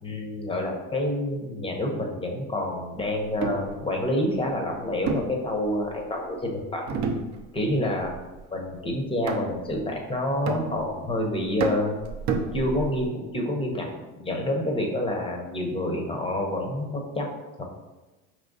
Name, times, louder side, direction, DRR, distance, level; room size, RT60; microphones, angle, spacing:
voice 1, 0.0-6.8 7.5-8.1 8.5-12.0 12.5-13.9 14.2-17.3 17.6-17.7, left 1 dB, 15° left, 1 dB, 0.7 m, -28 dB
sound 1, 3.2-3.7 5.1-6.1 6.9-7.7 8.0-8.4 9.3-9.8 10.5-11.1 11.6-13.1, right 5 dB, 40° right, 0.6 m, -30 dB
4.7 x 3.1 x 2.6 m, 1.1 s
supercardioid pair, 100°, 43 cm